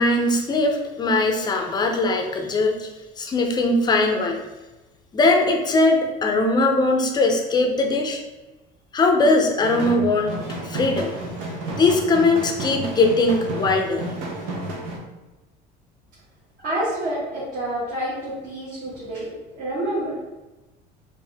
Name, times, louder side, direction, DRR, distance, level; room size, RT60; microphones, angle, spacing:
voice 1, 0.0-2.9 3.2-4.4 5.1-8.2 8.9-10.3 10.6-11.1 11.8-14.1, left 2 dB, 20° left, 3 dB, 0.5 m, -20 dB
sound 1, 9.6-15.0, right 1 dB, 85° right, 0.9 m, -31 dB
voice 2, 16.6-20.3, right 1 dB, 50° right, -9 dB, 1.5 m, -28 dB
4.4 x 2.6 x 3.4 m, 1.1 s
cardioid pair, 140°, 19 cm